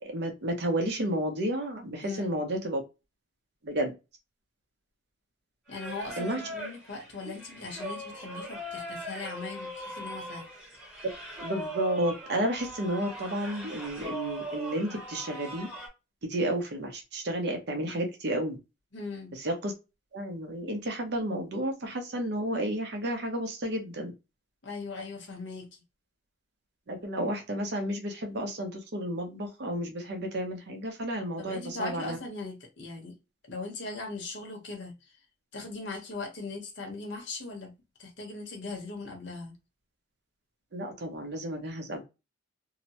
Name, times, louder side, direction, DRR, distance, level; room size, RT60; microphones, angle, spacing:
voice 1, 0.0-2.8 3.6-3.9 6.2-6.4 11.4-15.7 16.2-18.6 19.3-19.7 20.1-24.1 26.9-32.2 40.7-42.0, right 1 dB, 60° right, 0.8 m, -32 dB
voice 2, 2.0-2.4 5.7-10.4 18.9-19.4 24.6-25.8 31.4-33.2 33.5-35.1 35.5-37.7 38.0-39.5, left 3 dB, 65° left, 1.0 m, -39 dB
Singing, 5.7-15.9, equal, 5° right, 0.9 m, -40 dB
2.8 x 2.1 x 2.7 m
head